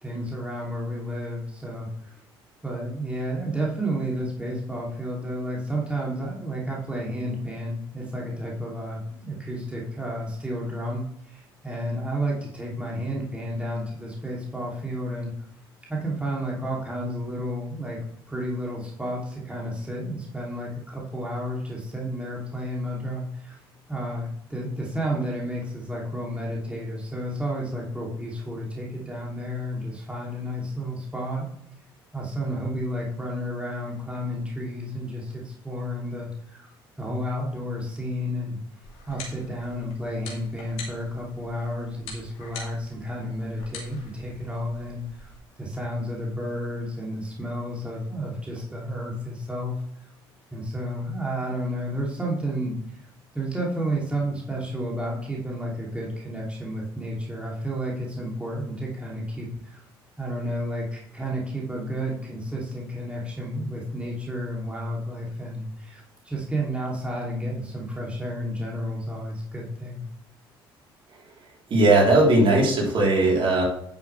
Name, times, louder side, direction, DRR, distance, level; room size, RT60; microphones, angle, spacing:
voice 1, 0.0-1.9 2.6-15.3 15.9-18.0 18.3-23.6 23.9-31.5 32.1-36.7 37.0-38.6 39.1-45.3 45.6-49.7 50.5-52.8 53.3-59.8 60.2-70.0, equal, 10° right, -4 dB, 3.0 m, -31 dB
sound 1, 38.8-45.4, left 3 dB, 65° left, 3.1 m, -44 dB
voice 2, 71.7-73.6, right 2 dB, 45° right, -3 dB, 3.8 m, -18 dB
10.0 x 7.5 x 3.4 m, 0.68 s
figure-of-eight pair, 55°, 12 cm